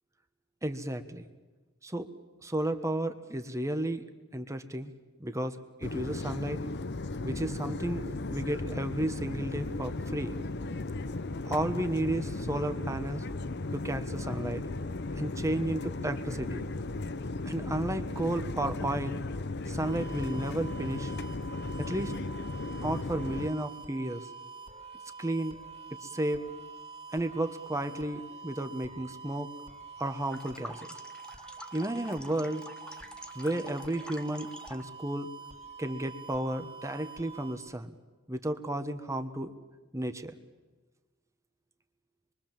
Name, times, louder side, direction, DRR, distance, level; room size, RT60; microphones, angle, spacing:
voice 1, 0.6-1.3 1.8-2.1 2.4-4.0 4.3-4.9 5.2-6.6 7.2-10.3 11.4-13.2 13.7-14.6 15.1-16.7 17.4-19.2 19.7-21.1 21.8-22.1 22.8-24.3 25.2-25.6 26.0-26.5 27.1-29.5 30.0-30.9 31.7-32.7 33.3-35.3 35.8-37.9 38.3-39.5 39.9-40.3, right 1 dB, 15° right, 8 dB, 1.3 m, -33 dB
sound 1, 5.8-23.5, left 2 dB, 55° left, 0.9 m, -36 dB
sound 2, 19.8-37.5, right 4 dB, 30° right, 3.1 m, -47 dB
sound 3, 30.2-34.9, left 1 dB, 5° left, 1.2 m, -48 dB
26.0 x 23.5 x 7.5 m, 1.3 s
head